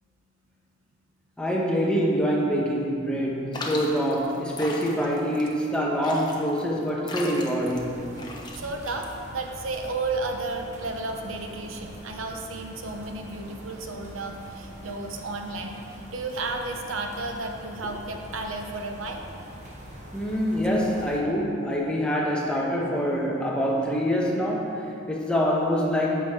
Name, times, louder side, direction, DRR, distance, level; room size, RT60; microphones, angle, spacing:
voice 1, 1.4-8.0 20.1-26.2, equal, 5° left, -3 dB, 1.1 m, -25 dB
sound 1, 3.5-9.5, left 2 dB, 20° left, 1.0 m, -37 dB
sound 2, 7.7-21.2, equal, 40° right, 1.2 m, -43 dB
voice 2, 8.5-19.2, right 3 dB, 90° right, 3 dB, 0.8 m, -33 dB
10.0 x 7.4 x 3.6 m, 2.7 s
head